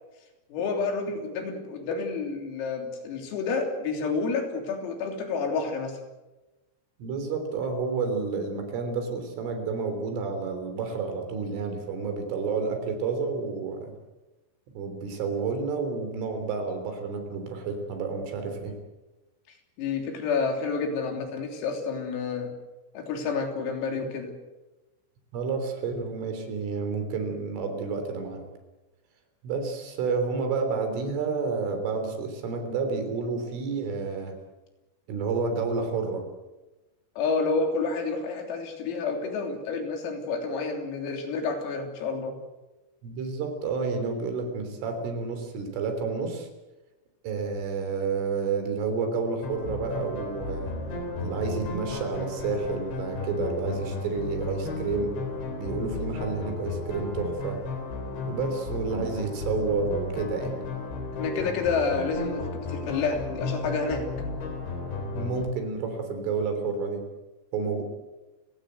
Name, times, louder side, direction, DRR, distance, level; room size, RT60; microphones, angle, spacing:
voice 1, 0.5-6.0 19.8-22.5 23.0-24.3 37.2-42.4 61.1-64.1, left 4 dB, 80° left, 3 dB, 6.0 m, -29 dB
voice 2, 7.0-13.9 14.8-18.8 25.3-28.4 29.4-34.4 35.1-36.2 43.0-46.5 47.2-50.7 51.2-55.2 55.6-57.6 58.3-60.5 65.1-67.1 67.5-67.8, right 4 dB, 70° right, 6 dB, 5.8 m, -30 dB
sound 1, 49.4-65.5, left 3 dB, 60° left, 5.8 m, -34 dB
30.0 x 16.5 x 8.1 m, 1.1 s
omnidirectional pair, 6.0 m